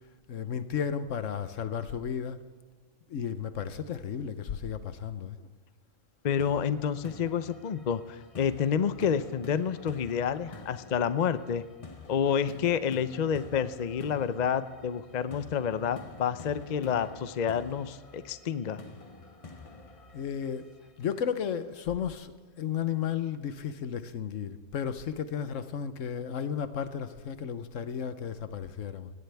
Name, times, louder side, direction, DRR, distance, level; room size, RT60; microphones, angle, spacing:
voice 1, 0.3-2.4 3.1-5.5 20.1-20.7 21.0-29.1, left 8 dB, 70° left, 12 dB, 1.2 m, -33 dB
voice 2, 6.2-11.6 12.1-18.8, left 7 dB, 50° left, 13 dB, 0.5 m, -29 dB
sound 1, 6.4-21.4, left 3 dB, 30° left, 0.9 m, -49 dB
19.0 x 17.0 x 3.5 m, 1.5 s
omnidirectional pair, 1.4 m